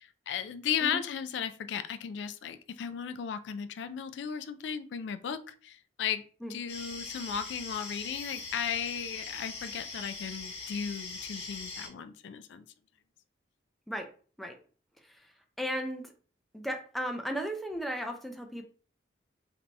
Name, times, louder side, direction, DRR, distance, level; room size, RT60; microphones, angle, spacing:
voice 1, 0.0-6.2 6.5-12.7, left 8 dB, 65° left, 11 dB, 0.3 m, -35 dB
sound 1, 6.7-11.9, left 3 dB, 30° left, 1.0 m, -41 dB
voice 2, 15.6-16.1 16.5-18.7, equal, ahead, 3 dB, 0.5 m, -35 dB
3.3 x 2.7 x 4.0 m, 0.42 s
head